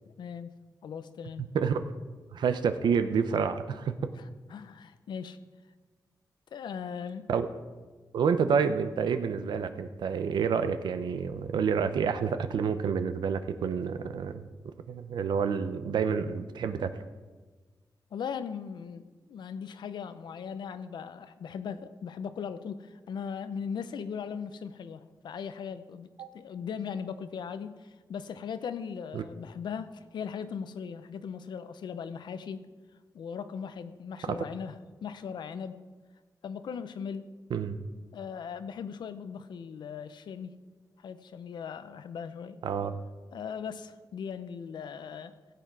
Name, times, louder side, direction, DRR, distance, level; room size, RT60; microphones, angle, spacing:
voice 1, 0.2-0.5 0.8-1.5 4.2-4.3 4.5-5.4 6.5-7.3 18.1-26.1 26.3-32.6 33.1-34.8 35.0-35.8 36.4-37.3 38.1-40.5 41.0-42.6 43.3-45.3, left 7 dB, 85° left, 12 dB, 0.7 m, -38 dB
voice 2, 1.4-1.8 2.3-4.1 7.3-7.5 8.1-14.4 14.9-16.9 26.2-26.3 29.1-29.2 34.3-34.4 37.5-37.8 42.6-42.9, right 6 dB, 90° right, 10 dB, 0.7 m, -28 dB
16.0 x 8.0 x 4.7 m, 1.4 s
wide cardioid pair, 95°, 7 cm